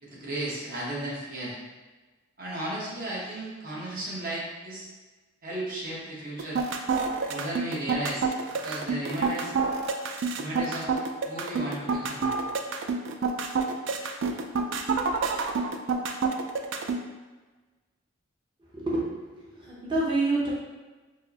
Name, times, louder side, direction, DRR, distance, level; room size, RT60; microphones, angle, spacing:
voice 1, 0.0-1.6 2.4-4.9 5.4-6.6 7.3-8.3 8.6-9.5 10.4-10.9 11.2-12.3, right 1 dB, 45° right, -6 dB, 1.0 m, -34 dB
sound 1, 6.4-17.0, right 4 dB, 65° right, 0.3 m, -27 dB
voice 2, 18.6-20.5, right 2 dB, 25° right, -6 dB, 0.7 m, -28 dB
4.5 x 2.0 x 2.8 m, 1.3 s
head